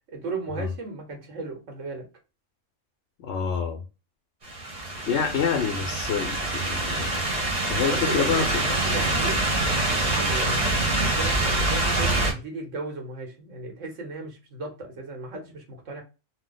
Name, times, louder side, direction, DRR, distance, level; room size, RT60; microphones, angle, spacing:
voice 1, 0.1-2.1 7.8-10.6 11.0-16.0, right 3 dB, 85° right, 1.3 m, -35 dB
voice 2, 3.2-3.8 5.1-6.4 6.7-7.1 7.7-8.6 11.4-11.6, left 6 dB, 70° left, 0.8 m, -27 dB
sound 1, 4.4-12.3, right 2 dB, 35° right, 0.9 m, -25 dB
2.7 x 2.1 x 3.7 m
omnidirectional pair, 1.3 m